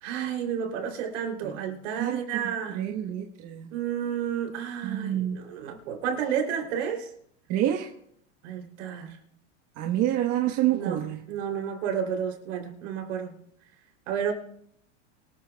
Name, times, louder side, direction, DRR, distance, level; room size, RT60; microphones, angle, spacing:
voice 1, 0.0-2.9 3.7-7.1 8.4-9.2 10.7-11.0 11.3-13.3 14.1-14.3, right 8 dB, 85° right, 3 dB, 3.3 m, -31 dB
voice 2, 2.7-3.7 4.8-5.4 7.5-7.9 9.8-11.2, right 12 dB, 50° right, 2 dB, 1.3 m, -27 dB
24.0 x 13.0 x 2.3 m, 0.70 s
supercardioid pair, 145°, 37 cm